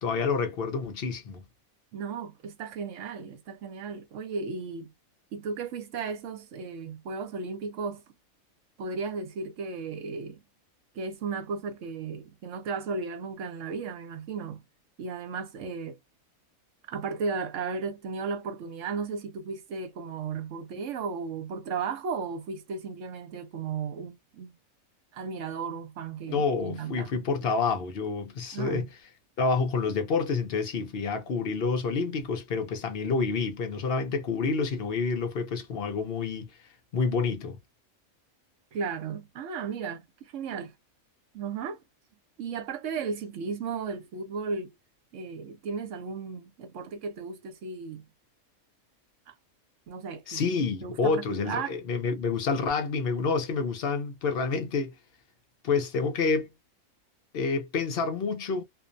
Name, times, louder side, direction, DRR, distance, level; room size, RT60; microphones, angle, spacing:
voice 1, 0.0-1.4 26.3-28.9 29.4-36.5 36.9-37.6 50.3-54.9 55.6-56.5 57.3-58.6, left 4 dB, 55° left, 0.7 m, -28 dB
voice 2, 1.9-4.9 5.3-8.0 8.8-10.4 11.0-14.6 15.0-16.0 16.9-24.5 25.1-27.1 28.5-28.9 38.7-40.7 41.3-41.8 42.4-44.7 45.1-48.0 49.3-49.4 49.9-50.4 50.8-51.7, right 5 dB, 70° right, 1.0 m, -35 dB
2.5 x 2.1 x 2.5 m
omnidirectional pair, 1.4 m